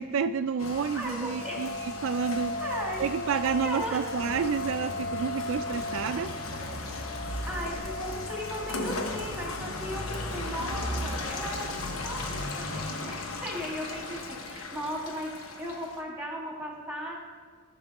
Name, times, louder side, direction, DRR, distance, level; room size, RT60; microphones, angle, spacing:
voice 1, 0.0-2.6 3.0-6.3, right 6 dB, 70° right, 10 dB, 0.3 m, -30 dB
Rain, 0.6-16.0, left 2 dB, 85° left, 1.0 m, -35 dB
voice 2, 0.9-1.7 2.6-3.0 3.6-4.0 7.4-17.1, equal, 5° right, -2 dB, 1.9 m, -37 dB
15.5 x 5.6 x 3.5 m, 1.5 s
head